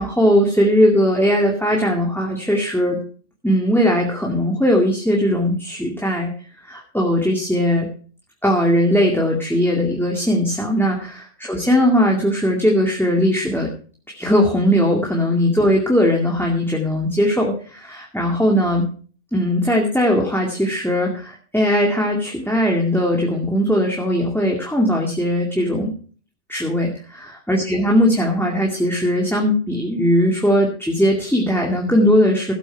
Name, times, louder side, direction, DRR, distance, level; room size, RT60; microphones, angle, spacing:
voice 1, 0.0-3.0 3.4-6.3 6.6-7.9 8.4-13.7 14.1-18.9 19.3-25.9 26.5-32.5, equal, ahead, -1 dB, 2.2 m, -19 dB
16.5 x 8.5 x 4.5 m, 0.42 s
omnidirectional pair, 1.3 m